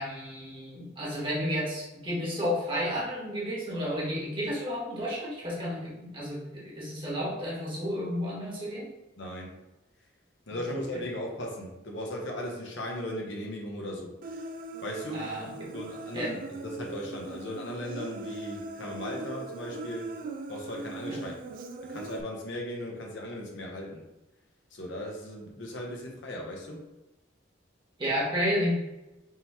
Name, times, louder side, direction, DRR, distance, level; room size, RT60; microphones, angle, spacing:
voice 1, 0.0-8.9 15.1-15.7 16.1-16.3 21.1-21.2 28.0-28.7, equal, 25° right, -6 dB, 1.3 m, -32 dB
voice 2, 9.2-9.6 10.5-14.1 14.8-15.3 15.7-20.1 20.5-21.4 21.8-24.0 24.7-26.9, left 1 dB, 65° left, 0 dB, 0.9 m, -37 dB
Human voice, 14.2-22.2, right 2 dB, 45° right, 0.3 m, -40 dB
3.7 x 3.0 x 4.3 m, 0.99 s
head